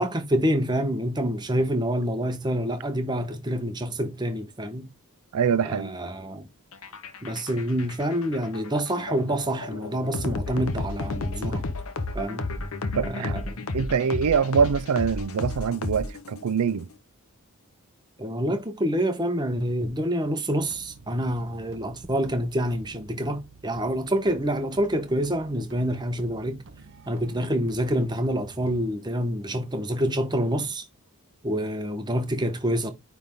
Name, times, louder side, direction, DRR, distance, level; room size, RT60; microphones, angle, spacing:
voice 1, 0.0-4.9 5.6-6.5 7.2-11.6 12.1-12.5 13.0-13.7 18.2-26.6 27.1-30.8 31.4-32.9, equal, 20° right, 1.0 m, -27 dB
voice 2, 5.3-5.9 12.9-13.4 13.7-16.9, right 6 dB, 90° right, 0.5 m, -24 dB
sound 1, 6.7-16.5, left 2 dB, 70° left, 1.0 m, -32 dB
sound 2, 20.6-28.9, right 4 dB, 55° right, 0.7 m, -49 dB
9.5 x 3.5 x 3.6 m
head